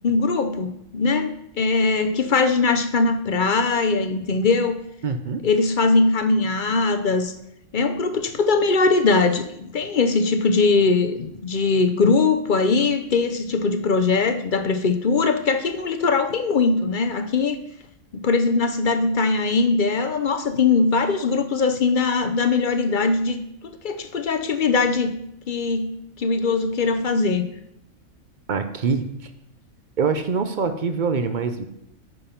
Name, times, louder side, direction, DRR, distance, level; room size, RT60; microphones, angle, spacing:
voice 1, 0.0-4.8 5.4-7.3 7.7-17.6 18.1-23.4 23.6-25.2 25.5-25.9 26.2-27.5, left 4 dB, 50° left, 9 dB, 0.6 m, -21 dB
voice 2, 5.0-5.5 28.5-29.3 30.0-31.7, right 5 dB, 45° right, 8 dB, 0.7 m, -24 dB
9.4 x 5.5 x 5.8 m, 0.78 s
omnidirectional pair, 1.5 m